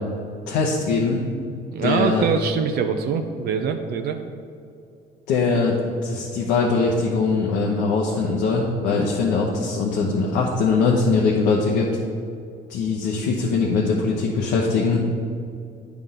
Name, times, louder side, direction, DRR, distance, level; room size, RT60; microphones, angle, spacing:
voice 1, 0.5-1.2 1.8-2.2 5.3-5.8 6.0-11.9 12.7-15.0, left 4 dB, 85° left, -3 dB, 1.0 m, -21 dB
voice 2, 1.7-4.2, right 6 dB, 70° right, 6 dB, 0.6 m, -23 dB
9.2 x 3.5 x 5.7 m, 2.4 s
cardioid pair, 110°, 17 cm